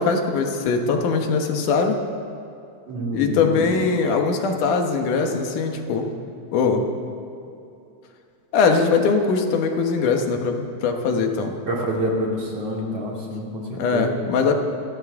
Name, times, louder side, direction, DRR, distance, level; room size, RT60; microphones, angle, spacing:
voice 1, 0.0-2.0 3.1-6.1 6.5-6.9 8.5-11.6 13.7-14.5, left 4 dB, 85° left, 4 dB, 2.8 m, -21 dB
voice 2, 2.9-3.6 11.7-14.1, right 1 dB, 55° right, -3 dB, 3.6 m, -27 dB
28.0 x 13.0 x 3.6 m, 2.7 s
omnidirectional pair, 3.5 m